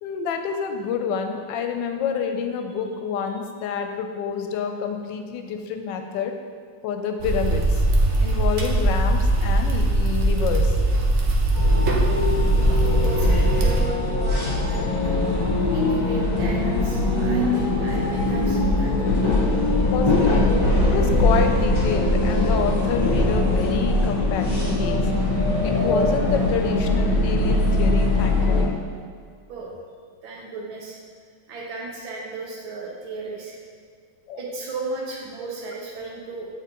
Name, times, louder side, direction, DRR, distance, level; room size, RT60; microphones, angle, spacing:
voice 1, 0.0-6.3 6.8-7.8 8.2-10.7 19.9-20.5 20.8-25.1 25.6-28.8 34.3-34.4, left 6 dB, 75° left, 5 dB, 1.2 m, -28 dB
sound 1, 7.2-13.8, right 1 dB, 65° right, 0.7 m, -20 dB
sound 2, 11.6-28.6, left 2 dB, 30° left, 1.3 m, -21 dB
voice 2, 12.7-15.4 15.7-19.1 29.5-29.7 30.2-31.0 31.5-33.6 34.3-36.5, right 3 dB, 85° right, -2 dB, 1.8 m, -35 dB
8.1 x 4.0 x 2.9 m, 2.1 s
omnidirectional pair, 2.1 m